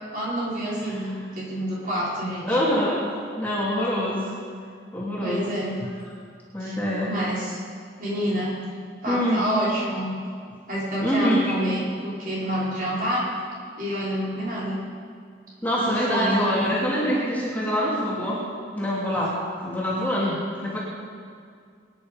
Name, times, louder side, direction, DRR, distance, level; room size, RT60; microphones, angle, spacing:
voice 1, 0.1-2.6 5.2-5.7 6.6-6.8 7.1-7.6 8.0-8.6 9.0-10.1 10.7-13.3 13.8-14.8 15.9-16.4, equal, 45° right, -7 dB, 5.3 m, -28 dB
voice 2, 2.5-3.0 3.4-4.3 4.9-5.5 5.8-5.9 6.5-7.1 9.1-9.4 11.0-11.6 15.6-18.4 18.7-19.4 19.6-20.8, equal, 10° left, -6 dB, 2.8 m, -25 dB
24.0 x 10.5 x 5.3 m, 2.2 s
head